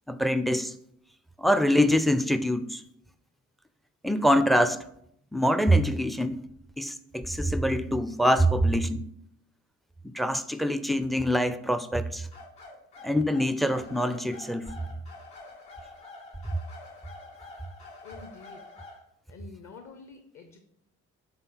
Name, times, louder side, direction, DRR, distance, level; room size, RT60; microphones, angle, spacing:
voice 1, 0.1-0.7 1.4-2.8 4.0-4.8 5.3-6.4 6.8-9.1 10.0-12.3 13.0-14.7, equal, ahead, 0.4 m, -24 dB
sound 1, 12.3-19.0, left 2 dB, 80° left, 2.1 m, -47 dB
voice 2, 18.0-18.7 19.3-20.6, left 5 dB, 45° left, 0.9 m, -47 dB
7.9 x 3.8 x 4.1 m
hypercardioid pair, 45°, 41 cm